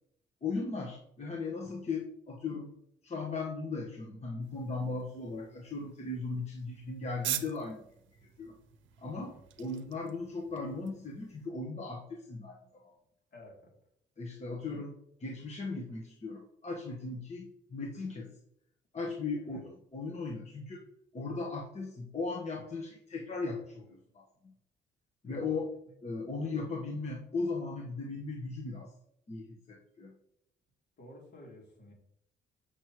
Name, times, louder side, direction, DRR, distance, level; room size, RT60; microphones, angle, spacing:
voice 1, 0.4-2.7 3.0-7.8 8.4-8.6 9.0-12.9 14.2-18.3 18.9-20.9 21.1-24.5 25.2-25.7 26.0-28.9 29.3-30.1, left 3 dB, 35° left, -2 dB, 1.3 m, -37 dB
sound 1, 4.4-11.5, right 12 dB, 75° right, 0.7 m, -44 dB
voice 2, 13.3-13.7 19.4-19.6 25.2-25.5 31.0-31.9, left 1 dB, 60° left, -2 dB, 2.9 m, -53 dB
7.7 x 6.4 x 3.0 m, 0.73 s
cardioid pair, 90°, 20 cm